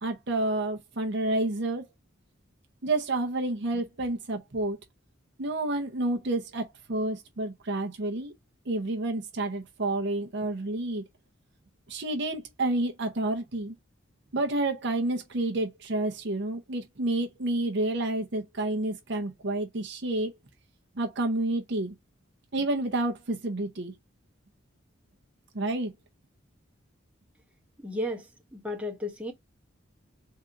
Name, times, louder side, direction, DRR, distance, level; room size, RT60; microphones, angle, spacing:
voice 1, 0.0-1.9 2.8-4.8 5.4-8.3 8.7-11.0 11.9-13.8 14.3-20.3 21.0-21.9 22.5-23.9 25.5-25.9, right 2 dB, 55° right, 0.7 m, -29 dB
voice 2, 27.8-28.3 28.5-29.3, left 1 dB, 5° right, 0.9 m, -33 dB
3.8 x 2.6 x 4.5 m
head